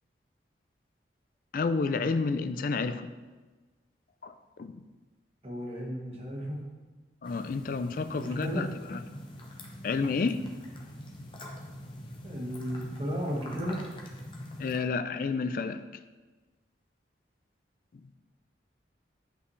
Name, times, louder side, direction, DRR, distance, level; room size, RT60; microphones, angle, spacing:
voice 1, 1.5-3.1 4.2-4.3 4.6-4.7 7.2-9.0 9.8-10.4 14.6-15.8, left 4 dB, 50° left, 11 dB, 0.3 m, -30 dB
voice 2, 5.4-6.6 8.1-8.7 12.2-13.8, equal, 35° right, -2 dB, 1.3 m, -34 dB
sound 1, 7.2-14.8, left 1 dB, 30° left, 0.8 m, -44 dB
8.1 x 5.7 x 3.2 m, 1.3 s
head